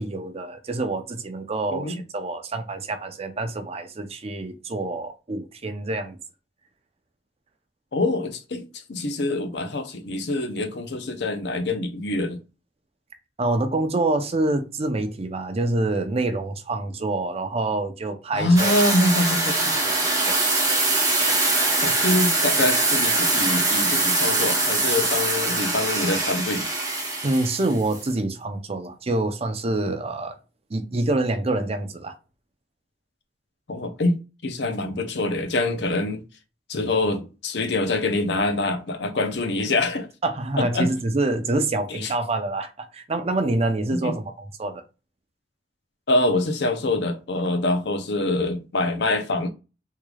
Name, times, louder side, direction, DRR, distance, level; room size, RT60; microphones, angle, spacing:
voice 1, 0.0-6.2 13.4-18.7 19.8-20.4 27.2-30.4 30.7-32.1 40.2-44.8, right 2 dB, 35° right, 0.6 m, -26 dB
voice 2, 1.7-2.0 7.9-12.4 18.3-19.7 21.8-26.7 33.7-36.2 36.7-40.1 40.6-40.9 42.0-42.1 44.0-44.1 46.1-49.5, left 2 dB, 70° left, 0.7 m, -25 dB
sound 1, 18.6-28.0, right 2 dB, 20° right, 0.9 m, -23 dB
3.6 x 3.1 x 2.3 m
head